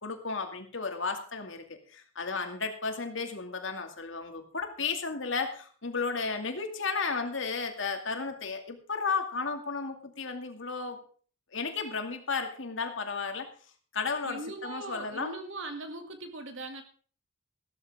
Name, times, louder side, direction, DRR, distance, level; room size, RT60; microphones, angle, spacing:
voice 1, 0.0-11.0 11.5-13.5 13.9-15.3, left 4 dB, 65° left, 5 dB, 2.4 m, -33 dB
voice 2, 14.2-16.8, right 2 dB, 65° right, 6 dB, 2.5 m, -40 dB
15.0 x 13.5 x 3.6 m, 0.43 s
head